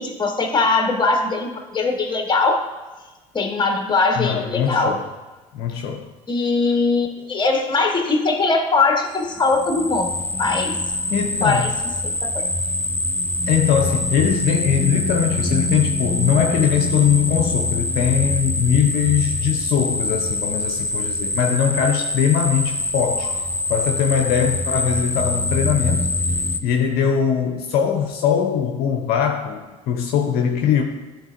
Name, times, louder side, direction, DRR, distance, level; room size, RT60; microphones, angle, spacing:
voice 1, 0.0-2.6 3.3-5.0 6.3-11.7 12.2-12.5, left 3 dB, 25° left, 3 dB, 1.4 m, -21 dB
voice 2, 4.2-5.0 5.5-6.1 11.1-11.7 13.5-26.1 26.6-30.8, left 8 dB, 60° left, 2 dB, 0.8 m, -21 dB
sound 1, 9.2-26.6, left 2 dB, 10° left, 0.5 m, -24 dB
12.0 x 4.5 x 2.6 m, 1.3 s
hypercardioid pair, 60°, 18 cm